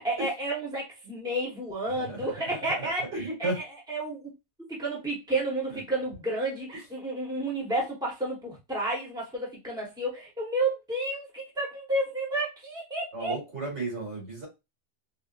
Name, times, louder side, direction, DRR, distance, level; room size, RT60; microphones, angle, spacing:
voice 1, 0.0-3.5 3.9-4.3 4.7-13.3, right 2 dB, 5° right, 1.0 m, -31 dB
voice 2, 2.8-3.6 13.1-14.5, right 2 dB, 90° right, 2.3 m, -33 dB
3.7 x 2.4 x 2.5 m
omnidirectional pair, 1.1 m